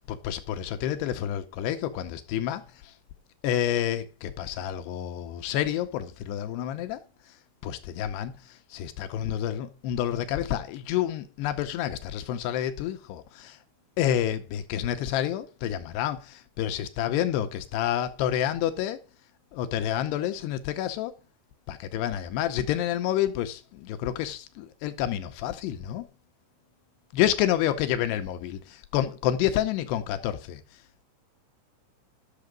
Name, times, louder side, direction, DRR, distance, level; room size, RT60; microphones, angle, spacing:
voice 1, 0.1-2.9 3.4-7.0 7.6-13.6 14.0-19.0 19.5-21.1 21.7-26.1 27.1-30.6, left 11 dB, 80° left, 2.4 m, -29 dB
11.5 x 6.6 x 4.9 m
omnidirectional pair, 5.6 m